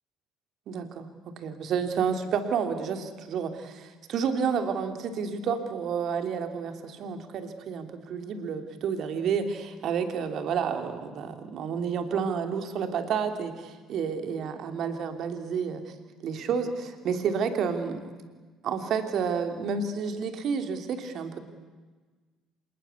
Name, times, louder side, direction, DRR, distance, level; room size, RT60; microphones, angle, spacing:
voice 1, 0.7-1.1 1.4-15.8 16.2-18.0 18.6-21.4, right 6 dB, 55° right, 7 dB, 3.0 m, -30 dB
27.0 x 20.5 x 8.4 m, 1.4 s
hypercardioid pair, 55°, 0 cm